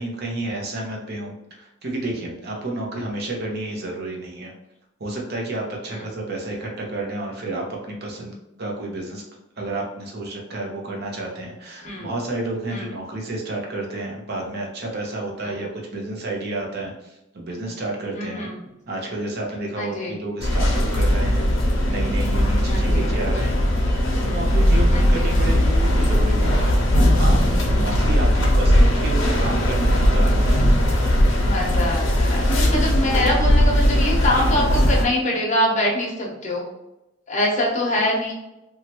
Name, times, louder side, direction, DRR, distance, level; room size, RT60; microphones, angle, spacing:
voice 1, 0.0-4.5 5.0-8.3 8.6-9.2 9.6-18.5 18.9-26.7 27.2-30.6, right 2 dB, 55° right, 0 dB, 0.7 m, -30 dB
voice 2, 18.1-18.6 19.8-20.1 22.7-23.1 24.9-25.4 31.4-36.7 37.3-38.3, left 1 dB, 40° left, -2 dB, 0.8 m, -24 dB
sound 1, 20.4-35.1, equal, 70° left, 0.7 m, -18 dB
3.0 x 2.4 x 2.9 m, 0.93 s
head